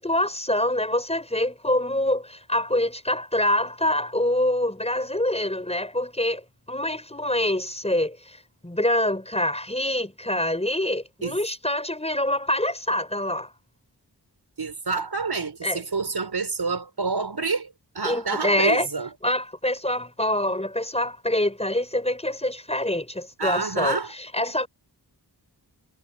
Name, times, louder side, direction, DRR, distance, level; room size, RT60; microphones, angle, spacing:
voice 1, 0.0-13.5 15.6-15.8 18.0-18.9 19.2-24.7, left 1 dB, 15° left, 5.8 m, -25 dB
voice 2, 14.6-19.1 23.4-24.1, right 4 dB, 65° right, 6.1 m, -28 dB
wide cardioid pair, 80°, 41 cm